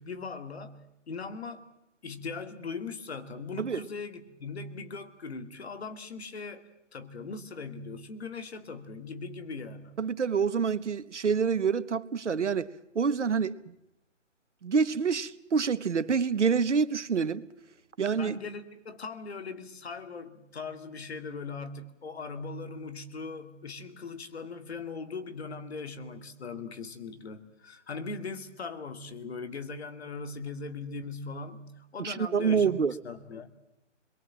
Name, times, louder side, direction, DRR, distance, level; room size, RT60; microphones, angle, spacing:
voice 1, 0.0-1.6 2.0-9.9 18.2-33.5, left 4 dB, 55° left, 2.5 m, -40 dB
voice 2, 10.0-13.7 14.6-17.5 18.0-18.4 32.0-32.9, right 6 dB, 65° right, 1.2 m, -27 dB
29.0 x 23.0 x 7.5 m
figure-of-eight pair, 150°, 38 cm